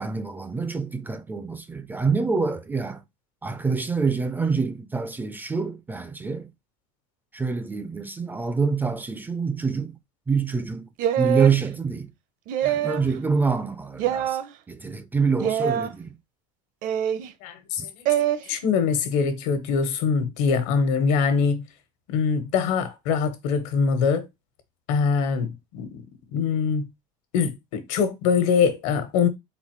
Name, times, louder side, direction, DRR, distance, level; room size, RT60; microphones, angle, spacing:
voice 1, 0.0-3.0 3.4-6.5 7.3-10.0 10.3-10.9 11.2-12.1 12.6-14.4 14.7-16.2, right 5 dB, 10° right, 0.4 m, -26 dB
sound 1, 11.0-11.6 12.5-13.1 14.0-14.4 15.4-15.9 16.8-17.3 18.1-18.4, right 11 dB, 50° right, 0.6 m, -24 dB
voice 2, 17.4-17.9 18.5-21.6 22.1-24.3 24.9-26.0 26.3-26.9 27.3-29.3, left 6 dB, 80° left, 1.3 m, -23 dB
4.0 x 3.9 x 3.1 m
cardioid pair, 145°, 17 cm